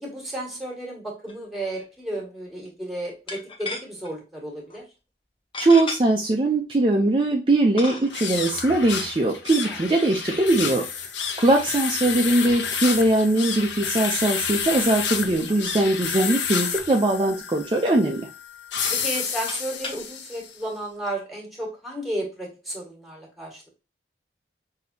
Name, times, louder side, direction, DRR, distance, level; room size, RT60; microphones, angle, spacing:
voice 1, 0.0-4.8 9.6-9.8 18.9-23.7, right 1 dB, ahead, -1 dB, 1.7 m, -33 dB
sound 1, 1.3-1.5 1.7-1.9 3.3-4.1 4.7-4.8 5.5-6.0 6.9-7.0 7.8-8.3 10.2-10.9 11.6-11.9 12.3-12.4 13.1-13.2 13.6-13.7 14.1-14.2 14.5-14.6 14.8-14.9 15.4-16.3 17.0-17.2 17.4-18.3 18.8-20.0, left 3 dB, 30° left, 0.7 m, -37 dB
voice 2, 5.6-10.9 11.4-18.2, right 2 dB, 30° right, 1 dB, 0.5 m, -21 dB
sound 2, 8.0-20.5, left 6 dB, 85° left, 0.8 m, -30 dB
6.0 x 2.8 x 2.7 m, 0.30 s
head